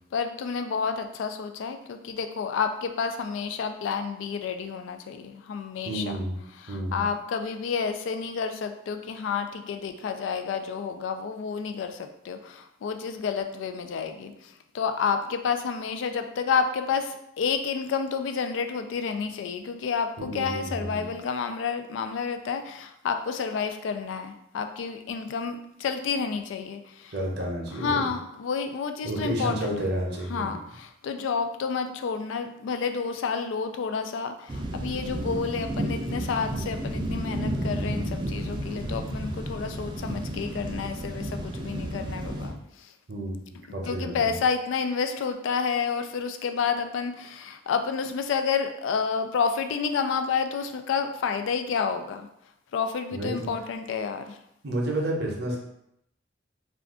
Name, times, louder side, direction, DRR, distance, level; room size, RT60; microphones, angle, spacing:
voice 1, 0.1-6.2 6.6-27.1 27.4-29.8 30.3-42.9 43.8-52.3 52.7-54.4, left 6 dB, 85° left, 8 dB, 0.3 m, -30 dB
voice 2, 5.9-6.4 6.7-7.0 20.2-21.0 27.1-28.1 29.0-30.5 43.1-43.4 43.7-44.3 53.1-53.5 54.6-55.6, right 1 dB, 60° right, -1 dB, 0.7 m, -30 dB
sound 1, 34.5-42.5, right 1 dB, 25° right, 0.3 m, -32 dB
2.4 x 2.3 x 3.5 m, 0.78 s
head